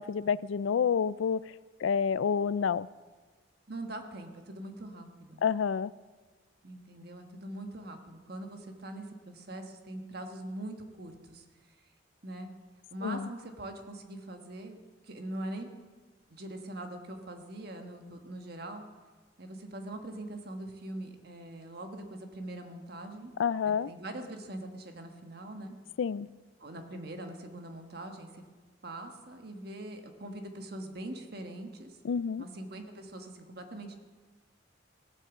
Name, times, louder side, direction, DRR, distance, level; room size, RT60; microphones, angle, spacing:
voice 1, 0.0-1.4 1.8-2.9 5.4-5.9 13.0-13.3 23.4-23.9 26.0-26.3 32.0-32.4, left 6 dB, 75° left, 19 dB, 0.3 m, -28 dB
voice 2, 3.7-5.4 6.6-11.7 12.2-12.5 12.9-14.8 15.0-15.7 16.3-18.8 19.4-23.3 23.6-25.7 26.6-28.4 28.8-32.0 32.4-33.9, right 1 dB, 55° right, 5 dB, 1.4 m, -42 dB
17.0 x 8.9 x 7.2 m, 1.4 s
head